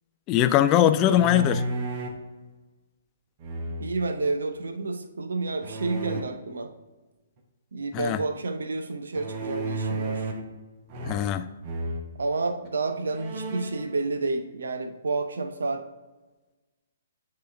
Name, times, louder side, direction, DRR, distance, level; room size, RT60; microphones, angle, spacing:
voice 1, 0.3-1.6 7.9-8.2 11.1-11.5, left 11 dB, 25° left, 11 dB, 0.3 m, -21 dB
sound 1, 0.9-2.2 3.4-4.1 5.6-6.2 9.1-10.5 10.9-11.4 11.6-12.1 12.7-12.8 13.1-13.9, right 1 dB, 35° right, 0.9 m, -32 dB
voice 2, 3.8-6.7 7.7-10.3 12.2-15.9, right 3 dB, 65° right, 8 dB, 0.6 m, -30 dB
9.3 x 3.9 x 3.4 m, 1.2 s
figure-of-eight pair, 125°, 0 cm